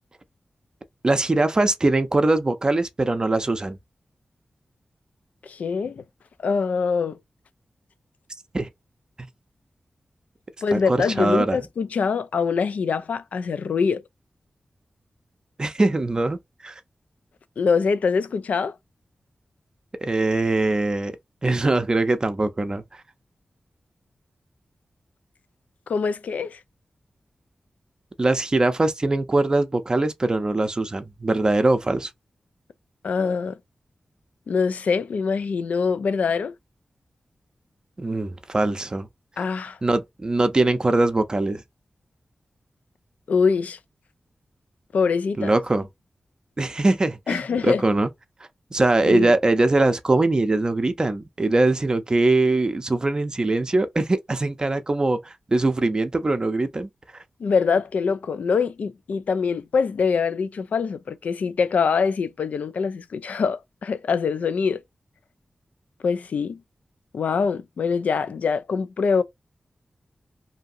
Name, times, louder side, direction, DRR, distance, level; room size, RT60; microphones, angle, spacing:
voice 1, 1.0-3.8 8.5-8.7 10.7-11.6 15.6-16.8 20.0-21.1 21.4-22.8 28.2-32.1 38.0-39.1 39.8-41.6 45.4-45.9 46.6-48.1 48.7-56.9, right 2 dB, 30° right, 0.5 m, -22 dB
voice 2, 5.4-6.0 6.4-7.2 10.6-14.0 17.6-18.7 25.9-26.6 33.0-33.6 34.5-36.5 39.4-39.8 43.3-43.8 44.9-45.5 47.3-47.8 49.0-49.3 57.4-64.8 66.0-66.6 67.1-69.2, left 5 dB, 85° left, 0.3 m, -24 dB
2.8 x 2.6 x 2.5 m
wide cardioid pair, 85°, 2 cm